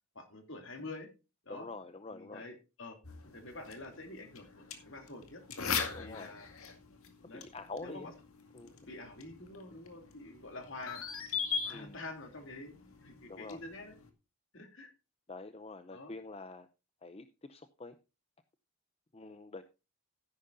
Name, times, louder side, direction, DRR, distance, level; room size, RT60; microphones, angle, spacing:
voice 1, 0.1-1.1 1.4-1.7 2.1-3.0 3.3-5.4 5.8-6.5 7.2-7.4 7.8-8.1 8.9-11.1 11.6-13.9 14.5-14.9 15.9-16.1, left 2 dB, 60° left, 5 dB, 3.1 m, -47 dB
voice 2, 1.5-2.5 5.9-6.3 7.3-8.1 8.5-8.7 11.7-12.0 13.3-13.6 15.3-16.7 17.0-18.0 19.1-19.6, left 3 dB, 25° left, 10 dB, 0.6 m, -46 dB
sound 1, 3.0-14.1, left 6 dB, 75° left, 2.1 m, -41 dB
13.5 x 11.0 x 2.6 m, 0.29 s
head